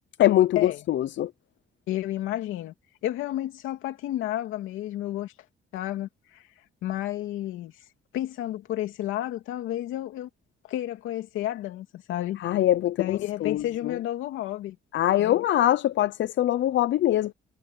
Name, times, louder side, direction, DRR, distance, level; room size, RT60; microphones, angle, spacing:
voice 1, 0.2-1.3 12.4-13.0 13.4-14.0 14.9-17.3, left 13 dB, 70° left, 0.6 m, -23 dB
voice 2, 1.9-2.7 3.0-5.3 5.7-6.4 6.8-7.7 8.1-10.3 10.6-12.4 13.0-14.8 15.2-15.3, left 13 dB, 90° left, 2.9 m, -31 dB
cardioid pair, 90°, 20 cm